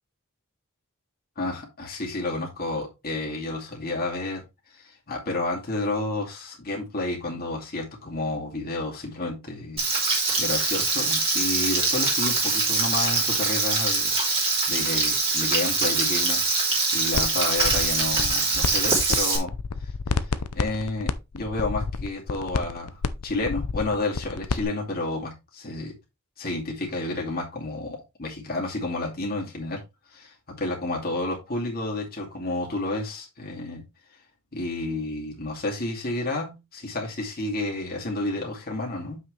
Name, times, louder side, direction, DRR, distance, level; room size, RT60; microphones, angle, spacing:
voice 1, 1.4-4.4 4.7-16.4 16.9-19.5 19.8-25.9 26.4-29.8 30.1-33.8 34.5-39.2, left 2 dB, 45° left, 2.5 m, -31 dB
Frying (food), 9.8-19.4, right 3 dB, 25° right, 3.0 m, -23 dB
sound 1, 17.1-17.3 17.6-19.2 19.4-24.6, left 4 dB, 85° left, 0.7 m, -29 dB
7.8 x 6.1 x 3.3 m
head